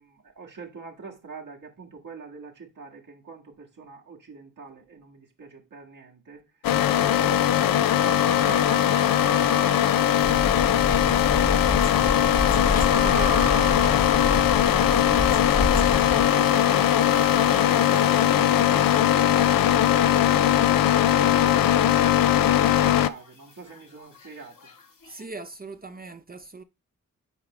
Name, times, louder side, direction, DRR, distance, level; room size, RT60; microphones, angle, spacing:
voice 1, 0.0-6.5 6.9-11.9 12.3-17.0 17.4-24.7, right 4 dB, 65° right, 1.9 m, -43 dB
sound 1, 6.6-23.1, left 11 dB, 90° left, 0.5 m, -20 dB
sound 2, 7.9-19.6 23.0-25.2, left 2 dB, 75° left, 2.4 m, -35 dB
sound 3, 10.2-16.3, left 3 dB, 25° left, 1.0 m, -28 dB
voice 2, 25.0-26.6, right 3 dB, 25° right, 0.6 m, -40 dB
8.1 x 4.8 x 3.1 m
cardioid pair, 65°, 33 cm